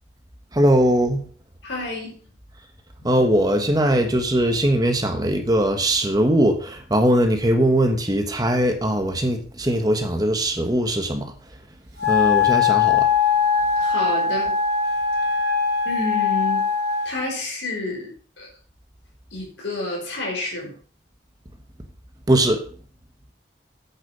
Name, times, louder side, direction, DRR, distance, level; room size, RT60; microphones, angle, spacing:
voice 1, 0.5-1.2 3.0-11.3 12.1-13.1 22.3-22.6, right 1 dB, 20° right, 5 dB, 1.3 m, -20 dB
voice 2, 1.6-2.2 13.8-14.5 15.8-16.6 17.0-18.5 19.3-20.8, left 2 dB, 90° left, -1 dB, 4.8 m, -29 dB
Wind instrument woodwind instrument, 12.0-17.2, left 6 dB, 65° right, 2.8 m, -21 dB
8.5 x 7.4 x 5.4 m, 0.42 s
head